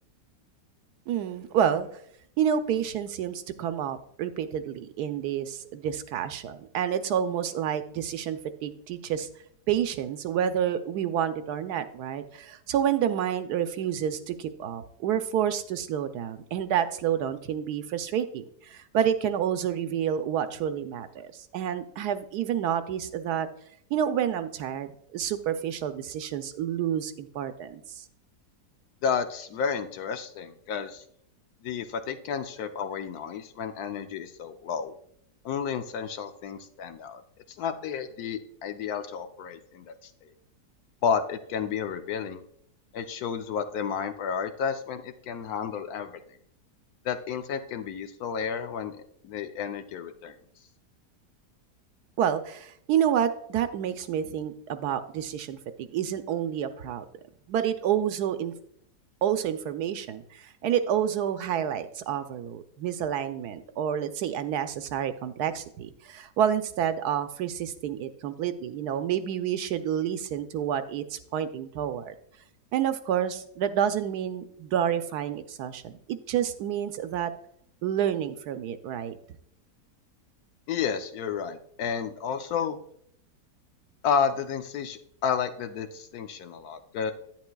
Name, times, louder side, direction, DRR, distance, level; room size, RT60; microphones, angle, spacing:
voice 1, 1.1-1.9 2.4-9.3 9.7-23.5 23.9-28.0 52.2-57.0 57.5-58.5 59.2-72.1 72.7-77.3 77.8-79.2, right 9 dB, 75° right, 10 dB, 1.1 m, -29 dB
voice 2, 29.0-31.0 31.6-34.9 35.4-37.2 37.6-40.3 41.0-42.4 42.9-46.1 47.0-50.4 80.7-82.8 84.0-87.1, left 7 dB, 70° left, 8 dB, 1.1 m, -31 dB
10.5 x 9.4 x 2.3 m, 0.68 s
omnidirectional pair, 1.8 m